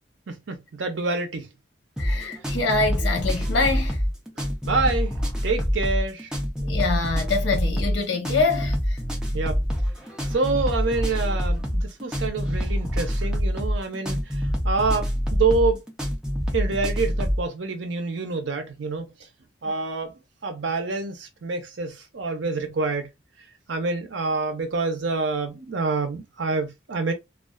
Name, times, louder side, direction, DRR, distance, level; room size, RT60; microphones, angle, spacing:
voice 1, 0.3-1.5 4.6-5.1 5.4-6.3 9.3-9.6 10.3-14.2 14.6-15.8 16.5-19.1 19.6-20.1 20.4-23.1 23.7-27.1, right 3 dB, 80° right, 0.6 m, -27 dB
voice 2, 2.0-4.0 6.6-9.0, left 3 dB, 85° left, 0.7 m, -25 dB
sound 1, 2.0-17.4, equal, 5° right, 0.5 m, -26 dB
2.4 x 2.3 x 2.2 m
head